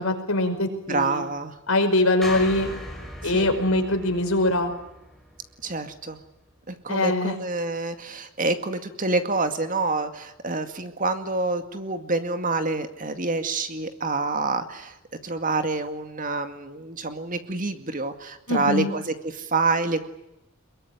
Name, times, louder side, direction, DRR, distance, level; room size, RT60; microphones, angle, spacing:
voice 1, 0.0-1.2 1.7-2.7 3.2-4.7 6.9-7.3 18.5-18.9, left 2 dB, 80° left, 5 dB, 5.3 m, -22 dB
voice 2, 0.9-1.6 3.2-3.5 5.6-6.2 6.7-14.9 15.2-20.1, right 3 dB, 40° right, 8 dB, 2.2 m, -27 dB
sound 1, 2.2-6.5, left 1 dB, ahead, 5.3 m, -39 dB
23.0 x 22.5 x 9.9 m, 0.85 s
head